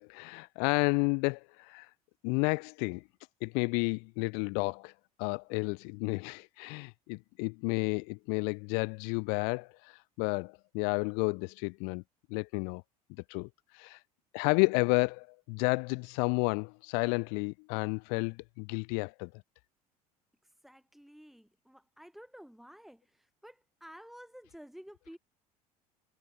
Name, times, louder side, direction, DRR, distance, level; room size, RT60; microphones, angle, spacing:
voice 1, 0.0-1.9 2.2-3.0 3.4-4.9 5.2-12.0 12.3-12.8 13.3-13.5 13.7-14.0 14.3-19.3, left 40 dB or more, 55° left, 0.9 m, -31 dB
voice 2, 20.6-25.2, equal, ahead, 6.1 m, -52 dB
figure-of-eight pair, 65°, 20 cm